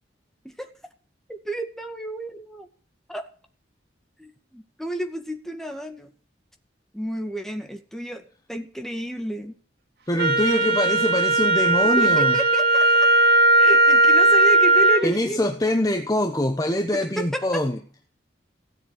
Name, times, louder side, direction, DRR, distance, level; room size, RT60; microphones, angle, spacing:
voice 1, 1.3-2.7 3.1-3.2 4.2-6.1 6.9-8.2 8.5-9.5 10.7-10.8 12.0-12.9 13.6-15.4 16.9-17.6, right 1 dB, ahead, 2.0 m, -31 dB
voice 2, 10.1-12.4 15.0-17.8, left 1 dB, 20° left, 1.0 m, -24 dB
Wind instrument woodwind instrument, 10.2-15.1, right 2 dB, 55° right, 2.9 m, -17 dB
16.5 x 7.4 x 9.7 m
head